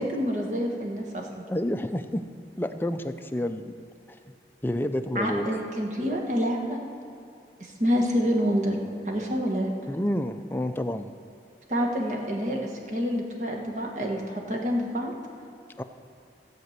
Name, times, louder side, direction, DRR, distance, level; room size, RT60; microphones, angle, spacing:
voice 1, 0.0-1.4 5.1-6.8 7.6-8.8 9.0-9.7 11.7-12.6 12.9-15.1, equal, 40° right, 0 dB, 1.5 m, -27 dB
voice 2, 1.5-2.2 2.6-3.7 4.6-5.6 9.9-11.1 15.8-15.9, left 1 dB, 10° left, 7 dB, 0.4 m, -29 dB
15.0 x 5.1 x 8.0 m, 2.5 s
head